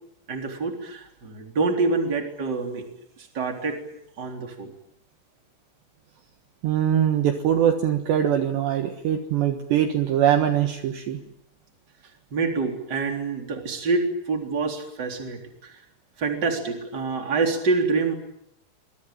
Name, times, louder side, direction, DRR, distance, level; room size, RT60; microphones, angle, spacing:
voice 1, 0.3-2.8 3.2-3.8 4.2-4.7 12.3-15.8 16.2-18.1, right 4 dB, 25° right, 3 dB, 3.5 m, -26 dB
voice 2, 6.6-11.2, right 10 dB, 65° right, 6 dB, 3.2 m, -22 dB
27.0 x 22.5 x 9.1 m, 0.79 s
omnidirectional pair, 5.9 m